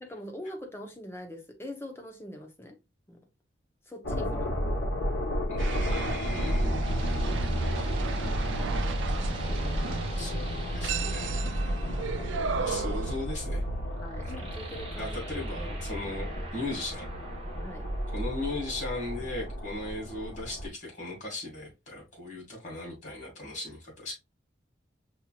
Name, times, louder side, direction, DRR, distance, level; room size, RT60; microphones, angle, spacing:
voice 1, 0.0-2.8 3.1-3.2 3.8-4.6 11.7-12.0 12.7-13.0 14.0-15.2 15.5-15.8 17.6-17.9, left 1 dB, 15° left, 0.7 m, -43 dB
sound 1, 4.0-20.7, equal, 90° left, 1.1 m, -32 dB
voice 2, 5.5-7.4 9.5-11.9 12.6-13.6 15.0-17.1 18.1-24.1, left 2 dB, 40° left, 2.3 m, -38 dB
sound 2, 5.6-13.2, right 5 dB, 75° right, 0.4 m, -35 dB
sound 3, 6.8-19.9, right 3 dB, 30° right, 1.0 m, -47 dB
5.4 x 3.0 x 2.3 m
head